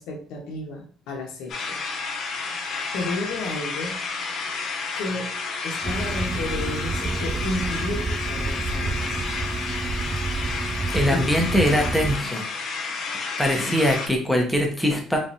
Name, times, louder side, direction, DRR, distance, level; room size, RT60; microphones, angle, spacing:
voice 1, 0.0-1.8 2.9-4.0 5.0-5.3 5.6-9.2 11.1-11.3, left 2 dB, 80° left, 1 dB, 1.0 m, -32 dB
sound 1, 1.5-14.1, left 4 dB, 55° left, 0.9 m, -31 dB
sound 2, 5.8-12.1, right 3 dB, 25° right, 0.3 m, -29 dB
voice 2, 10.9-12.4 13.4-15.2, equal, 5° left, 1 dB, 0.9 m, -22 dB
3.7 x 3.2 x 2.8 m, 0.42 s
cardioid pair, 115°, 0 cm